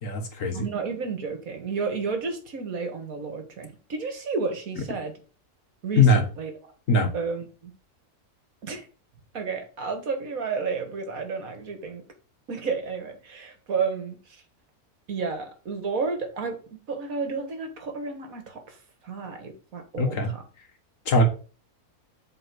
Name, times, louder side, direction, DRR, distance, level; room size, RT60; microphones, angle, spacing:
voice 1, 0.0-0.6 6.0-6.2 6.9-7.1 20.0-20.3 21.1-21.2, left 2 dB, 60° left, 5 dB, 1.6 m, -20 dB
voice 2, 0.5-5.1 5.8-6.5 7.1-7.7 8.6-8.8 9.3-12.0 12.5-14.2 15.1-18.8 19.0-20.4, right 5 dB, 65° right, 6 dB, 1.8 m, -31 dB
7.9 x 3.7 x 6.1 m, 0.37 s
omnidirectional pair, 1.6 m